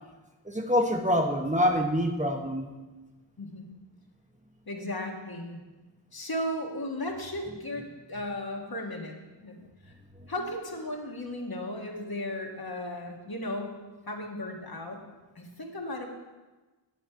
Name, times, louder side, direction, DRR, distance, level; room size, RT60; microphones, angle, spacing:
voice 1, 0.4-2.7, equal, 15° right, 2 dB, 0.8 m, -26 dB
voice 2, 4.7-5.6 6.1-9.2 9.4-9.6 9.8-9.9 10.3-13.8 14.1-15.0 15.3-16.1, left 1 dB, 50° left, 1 dB, 1.5 m, -35 dB
10.0 x 7.3 x 4.5 m, 1.2 s
wide cardioid pair, 65°, 45 cm